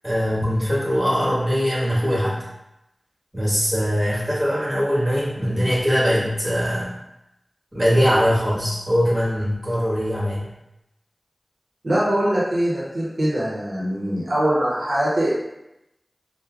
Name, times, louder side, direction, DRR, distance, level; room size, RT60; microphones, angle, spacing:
voice 1, 0.0-2.5 3.3-6.9 7.7-10.5, equal, 25° right, -7 dB, 1.5 m, -21 dB
voice 2, 11.8-15.3, right 1 dB, 80° right, -7 dB, 0.7 m, -22 dB
4.4 x 2.1 x 2.3 m, 0.89 s
wide cardioid pair, 40°, 0 cm